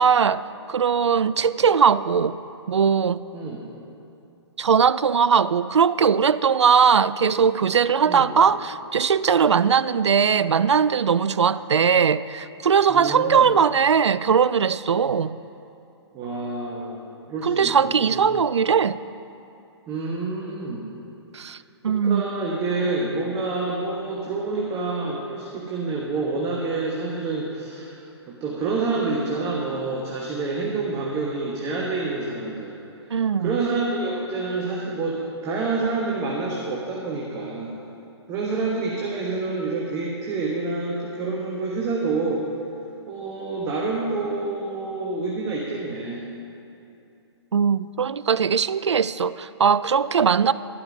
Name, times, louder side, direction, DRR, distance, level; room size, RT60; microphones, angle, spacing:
voice 1, 0.0-2.4 2.7-3.2 4.6-15.4 17.4-19.0 21.3-21.6 21.8-22.2 33.1-33.6 47.5-50.5, right 6 dB, 80° right, 16 dB, 0.4 m, -20 dB
voice 2, 3.3-3.6 8.0-8.3 12.9-13.5 16.1-18.3 19.9-20.9 21.9-32.8 33.4-37.7 38.3-42.4 43.1-46.2, right 3 dB, 20° right, -3 dB, 1.3 m, -28 dB
12.0 x 11.5 x 5.2 m, 2.7 s
figure-of-eight pair, 130°, 15 cm